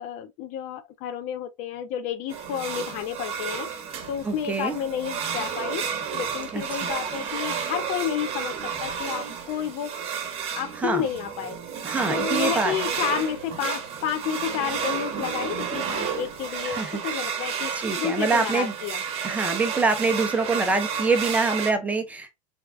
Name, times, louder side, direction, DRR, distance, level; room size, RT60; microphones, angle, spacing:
voice 1, 0.0-3.7 4.1-5.9 6.1-8.5 8.8-9.9 10.6-11.6 12.1-17.7 18.0-19.0, left 9 dB, 45° left, 0.4 m, -30 dB
sound 1, 2.3-21.7, right 7 dB, 35° right, 0.9 m, -31 dB
voice 2, 4.2-4.8 6.5-6.9 10.8-11.0 11.8-12.7 15.8-15.9 16.6-17.4 17.7-18.7 19.2-22.4, right 3 dB, 10° right, 0.5 m, -25 dB
3.4 x 2.4 x 3.3 m
supercardioid pair, 150°, 17 cm